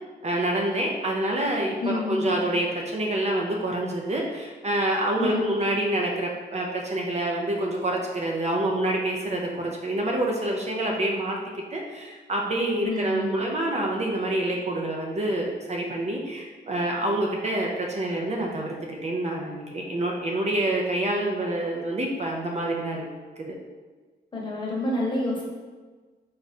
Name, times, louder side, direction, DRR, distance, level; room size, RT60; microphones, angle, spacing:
voice 1, 0.2-11.4 11.7-23.1 23.4-23.5, right 1 dB, 40° right, -1 dB, 0.5 m, -27 dB
voice 2, 1.8-2.4 5.2-5.5 12.8-13.5 24.3-25.5, left 1 dB, 25° left, -4 dB, 0.9 m, -29 dB
4.5 x 2.5 x 4.1 m, 1.4 s
wide cardioid pair, 160°, 18 cm